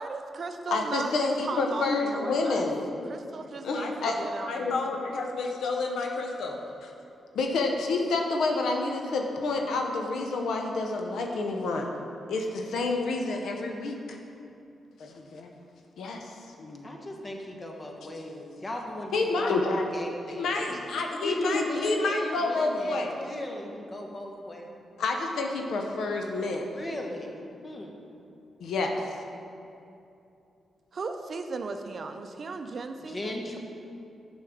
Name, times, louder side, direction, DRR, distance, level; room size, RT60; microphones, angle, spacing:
voice 1, 0.0-2.7 3.0-4.8 30.9-33.4, right 4 dB, 60° right, 7 dB, 0.4 m, -36 dB
voice 2, 0.7-3.1 3.6-6.9 7.3-11.9 12.3-14.2 15.0-15.5 16.0-16.3 16.6-16.9 19.1-19.8 20.3-23.2 25.0-26.7 28.6-29.2, left 3 dB, 80° left, 2 dB, 0.6 m, -29 dB
voice 3, 16.8-19.6 19.9-20.8 21.2-24.7 26.6-28.0 33.1-33.6, left 1 dB, 35° left, 1 dB, 1.0 m, -37 dB
6.6 x 5.4 x 3.5 m, 2.7 s
supercardioid pair, 55°, 0 cm